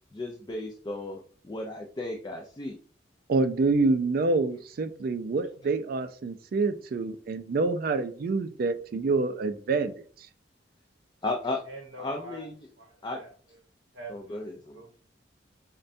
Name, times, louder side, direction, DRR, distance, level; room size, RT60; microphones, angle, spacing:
voice 1, 0.1-2.8 11.2-11.6 12.0-12.7 13.0-13.2 14.1-14.8, left 2 dB, 25° left, 1 dB, 0.4 m, -35 dB
voice 2, 3.3-10.3, right 3 dB, 50° right, 10 dB, 0.3 m, -27 dB
voice 3, 11.6-12.5 12.8-12.9 13.2-13.3 13.9-14.4 14.7-15.1, right 2 dB, 75° right, 0 dB, 0.7 m, -44 dB
5.2 x 2.2 x 2.5 m, 0.42 s
head